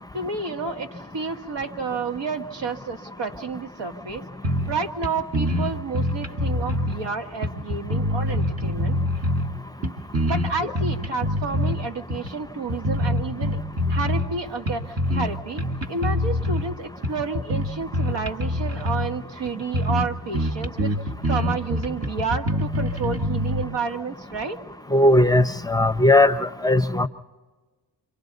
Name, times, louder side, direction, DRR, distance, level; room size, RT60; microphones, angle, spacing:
voice 1, 0.1-4.2 4.7-9.0 10.2-13.6 13.9-20.9 21.3-24.6, right 4 dB, 85° right, 6 dB, 1.8 m, -30 dB
sound 1, 4.4-4.8 5.0-5.1 5.3-7.0 7.4-9.5 9.8-11.8 12.1-12.3 12.7-14.3 14.7-15.3 15.6-16.6 17.0-19.1 19.4-19.5 19.7-20.1 20.3-23.6, left 1 dB, 35° right, 1.7 m, -25 dB
voice 2, 24.9-27.1, left 1 dB, 10° left, 11 dB, 0.7 m, -18 dB
29.0 x 25.0 x 4.1 m, 1.3 s
cardioid pair, 75°, 42 cm